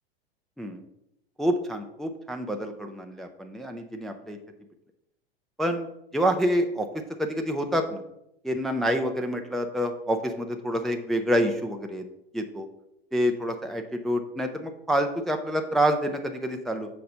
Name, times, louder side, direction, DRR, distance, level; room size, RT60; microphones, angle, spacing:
voice 1, 1.4-4.4 5.6-5.9 6.1-6.9 7.2-8.0 8.4-12.0 12.3-12.7 13.1-16.9, equal, ahead, 4 dB, 0.5 m, -27 dB
6.5 x 4.2 x 5.3 m, 0.80 s
figure-of-eight pair, 95°, 31 cm